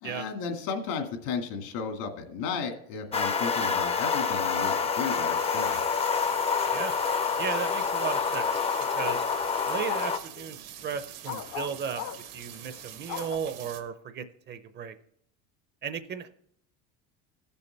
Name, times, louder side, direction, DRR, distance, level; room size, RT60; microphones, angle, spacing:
voice 1, 0.0-5.8, left 5 dB, 75° left, 5 dB, 2.0 m, -34 dB
sound 1, 3.1-10.2, left 6 dB, 20° left, 0.5 m, -27 dB
sound 2, 5.3-13.8, right 11 dB, 80° right, 1.5 m, -45 dB
voice 2, 7.4-8.7 8.9-9.2 9.7-15.0 15.8-16.3, right 7 dB, 30° right, 11 dB, 0.6 m, -35 dB
sound 3, 9.0-11.0 11.3-13.4, left 11 dB, 55° left, 0.7 m, -39 dB
16.0 x 6.9 x 3.3 m, 0.68 s
cardioid pair, 135°, 34 cm